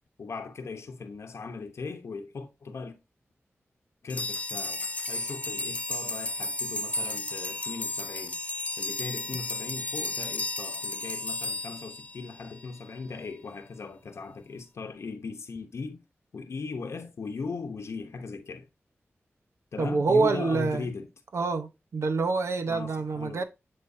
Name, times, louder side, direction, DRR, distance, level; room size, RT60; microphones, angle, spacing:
voice 1, 0.2-3.0 4.0-8.4 8.8-16.0 16.3-18.7 19.7-21.1 22.7-23.4, left 4 dB, 80° left, 0.8 m, -38 dB
sound 1, 4.1-12.6, left 2 dB, 30° left, 0.5 m, -33 dB
voice 2, 19.8-20.9 21.3-23.4, right 4 dB, 80° right, 0.9 m, -26 dB
9.5 x 3.8 x 2.7 m
wide cardioid pair, 100°, 5 cm